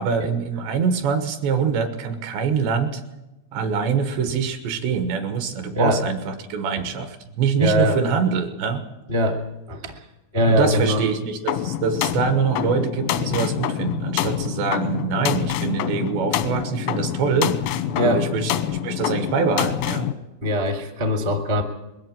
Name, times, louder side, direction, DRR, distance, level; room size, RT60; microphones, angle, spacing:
voice 1, 0.0-3.0 3.5-8.8 10.5-17.6 18.0-20.1, right 5 dB, 70° right, 8 dB, 3.0 m, -24 dB
voice 2, 7.6-8.0 9.1-9.4 9.7-10.0 10.3-11.0 17.9-18.2 20.4-21.6, left 1 dB, 40° right, 5 dB, 0.7 m, -21 dB
sound 1, 11.5-20.1, left 11 dB, 90° left, 3.7 m, -26 dB
21.5 x 14.0 x 9.1 m, 1.0 s
omnidirectional pair, 6.0 m